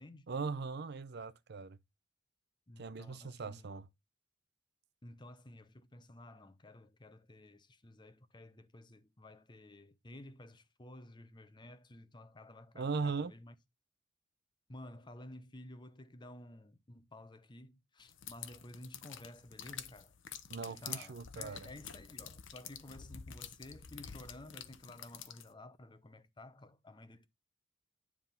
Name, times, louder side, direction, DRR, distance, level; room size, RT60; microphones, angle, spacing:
voice 1, 0.3-1.8 2.8-3.9 12.7-13.3 20.5-21.7, right 4 dB, 60° right, 0.6 m, -39 dB
voice 2, 2.7-3.7 5.0-13.5 14.7-20.1 20.6-27.3, left 1 dB, 25° left, 0.8 m, -53 dB
sound 1, 18.1-25.5, left 9 dB, 85° left, 0.9 m, -48 dB
9.9 x 3.6 x 5.6 m
head